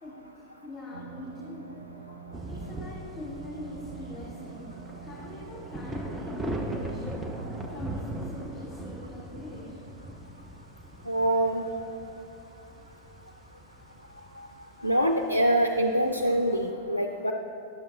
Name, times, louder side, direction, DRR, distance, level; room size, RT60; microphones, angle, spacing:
voice 1, 0.0-1.8 2.3-7.1 7.7-9.8, left 1 dB, 20° left, -6 dB, 1.5 m, -43 dB
sound 1, 0.9-7.8, right 5 dB, 75° right, 0.4 m, -46 dB
sound 2, 2.3-16.7, right 1 dB, 10° right, 0.6 m, -39 dB
voice 2, 11.1-11.8 14.4-14.5 14.8-17.3, right 1 dB, 85° left, 3 dB, 0.3 m, -25 dB
10.0 x 6.8 x 2.7 m, 2.7 s
figure-of-eight pair, 90°, 0 cm